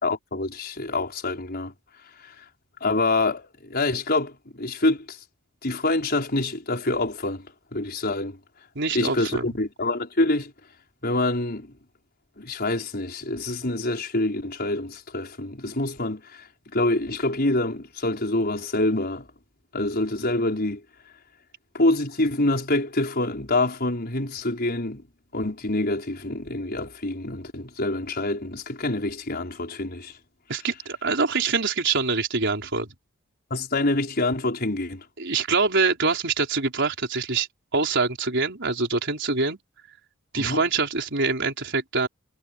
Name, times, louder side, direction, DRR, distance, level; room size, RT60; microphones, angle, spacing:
voice 1, 0.0-1.7 2.2-2.3 2.8-5.2 5.6-7.5 7.7-8.4 8.9-10.5 11.0-11.7 12.4-16.5 16.7-19.3 19.7-20.8 21.7-25.0 25.3-30.1 33.5-35.0 40.3-40.6, left 2 dB, 45° left, 5.3 m, -26 dB
voice 2, 8.7-9.5 30.5-32.9 35.2-37.5 37.7-39.6 40.3-42.1, right 4 dB, 60° right, 4.9 m, -24 dB
head